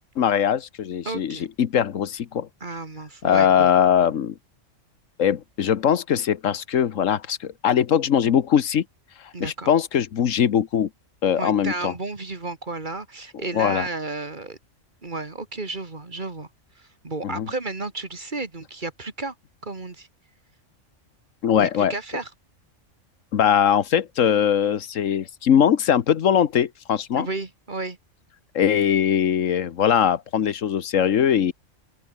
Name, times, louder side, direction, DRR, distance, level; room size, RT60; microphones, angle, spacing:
voice 1, 0.2-2.5 3.2-4.3 5.2-8.8 9.4-10.9 11.2-11.9 13.5-13.9 17.2-17.5 21.4-21.9 23.3-27.3 28.5-31.5, left 8 dB, 85° left, 1.4 m, -21 dB
voice 2, 1.1-1.4 2.6-3.7 9.3-9.7 11.4-14.6 15.0-16.5 16.8-19.3 19.6-20.1 21.6-22.3 27.2-28.0, right 3 dB, 40° right, 2.3 m, -32 dB
open air
omnidirectional pair, 1.3 m